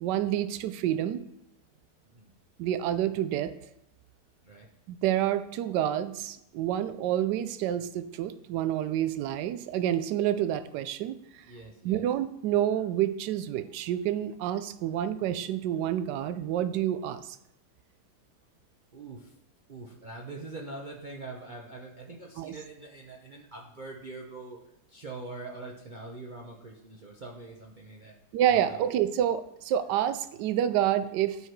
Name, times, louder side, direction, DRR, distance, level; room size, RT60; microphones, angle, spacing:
voice 1, 0.0-1.2 2.6-3.5 4.9-11.4 11.8-17.4 22.4-22.5 28.3-31.4, right 11 dB, 80° right, 11 dB, 1.2 m, -28 dB
voice 2, 11.4-12.1 18.9-19.3 19.7-24.6 24.9-28.2 28.5-28.9, right 3 dB, 40° right, -1 dB, 0.7 m, -43 dB
11.0 x 4.7 x 4.6 m, 0.82 s
omnidirectional pair, 1.8 m